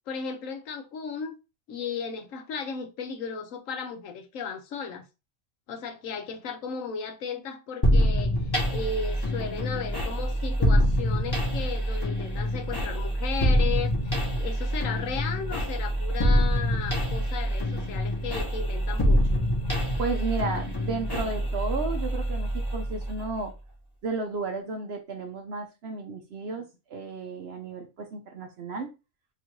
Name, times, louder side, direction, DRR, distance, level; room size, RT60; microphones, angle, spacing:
voice 1, 0.1-1.4 1.7-5.1 5.7-19.4, left 5 dB, 70° left, 1.0 m, -35 dB
sound 1, 7.8-23.5, equal, 20° left, 0.8 m, -26 dB
voice 2, 20.0-23.5 24.0-26.6 26.9-28.9, right 3 dB, 60° right, 0.8 m, -33 dB
3.0 x 2.5 x 4.4 m
omnidirectional pair, 1.4 m